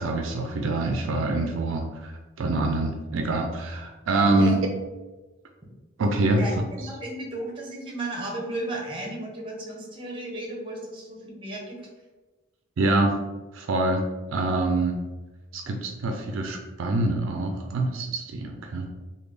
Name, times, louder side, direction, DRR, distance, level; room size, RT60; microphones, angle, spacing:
voice 1, 0.0-4.6 6.0-6.4 12.8-13.1 13.5-15.0 15.5-18.9, right 2 dB, 70° right, 3 dB, 0.4 m, -25 dB
voice 2, 6.4-11.8 12.8-13.1, right 1 dB, 25° right, -1 dB, 0.7 m, -34 dB
3.3 x 2.2 x 3.3 m, 1.2 s
head